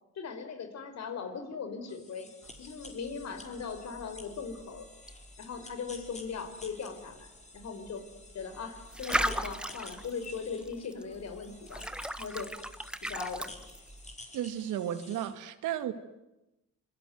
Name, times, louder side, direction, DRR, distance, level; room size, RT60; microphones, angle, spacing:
voice 1, 0.1-2.3 2.6-4.8 5.4-8.0 8.3-12.5 13.0-13.5, left 5 dB, 60° left, 4.9 m, -39 dB
sound 1, 1.9-15.3, left 2 dB, 25° left, 5.1 m, -52 dB
sound 2, 2.4-14.1, right 1 dB, 5° right, 1.5 m, -39 dB
voice 2, 14.3-15.9, right 11 dB, 85° right, 2.1 m, -33 dB
26.5 x 23.0 x 9.5 m
cardioid pair, 90°, 30 cm